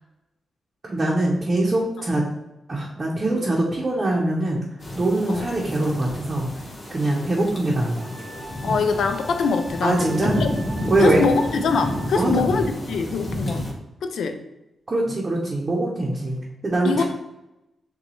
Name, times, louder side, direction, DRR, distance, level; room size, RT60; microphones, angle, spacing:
voice 1, 0.8-2.2 2.7-4.6 4.9-6.5 6.9-8.1 9.8-10.3 10.9-11.3 12.1-12.4 14.9-17.0, right 2 dB, 25° right, -4 dB, 0.7 m, -23 dB
sound 1, 4.8-13.7, left 1 dB, 25° left, 1.1 m, -31 dB
Wind instrument woodwind instrument, 8.0-12.3, right 2 dB, 70° right, 0.7 m, -41 dB
voice 2, 8.6-10.5 11.0-13.7 14.0-14.4 16.8-17.0, left 5 dB, 75° left, 7 dB, 0.4 m, -23 dB
6.7 x 2.3 x 3.0 m, 0.93 s
wide cardioid pair, 145°, 0 cm